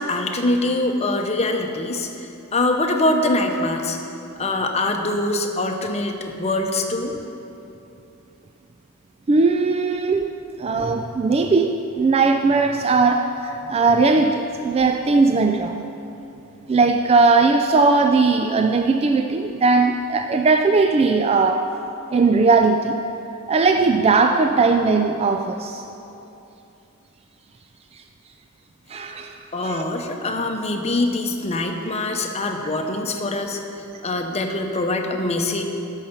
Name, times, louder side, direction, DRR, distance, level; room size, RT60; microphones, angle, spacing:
voice 1, 0.0-4.0 4.4-7.2 29.5-33.6 34.0-35.6, left 2 dB, 30° left, 4 dB, 0.8 m, -23 dB
voice 2, 9.3-10.3 10.6-15.8 16.7-21.6 22.1-23.0 23.5-25.8 28.9-29.9, right 4 dB, 25° right, 6 dB, 0.3 m, -18 dB
12.5 x 5.6 x 6.7 m, 2.9 s
head